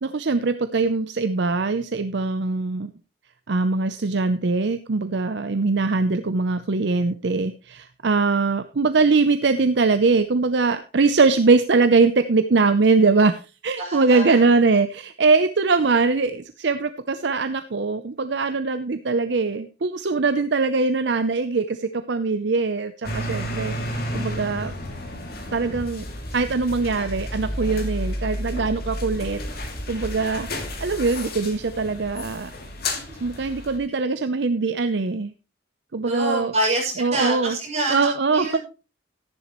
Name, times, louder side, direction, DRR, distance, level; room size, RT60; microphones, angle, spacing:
voice 1, 0.0-2.9 3.5-13.4 13.6-24.7 25.5-26.1 26.3-30.5 30.8-32.5 33.2-35.3 35.9-36.5 37.0-37.6 37.9-38.6, right 4 dB, 60° right, 10 dB, 0.6 m, -22 dB
voice 2, 13.8-14.6 32.9-33.0 36.1-38.6, right 2 dB, 35° right, -3 dB, 5.7 m, -27 dB
sound 1, 23.0-33.8, left 1 dB, 50° left, 2.5 m, -31 dB
13.5 x 10.5 x 3.0 m, 0.32 s
head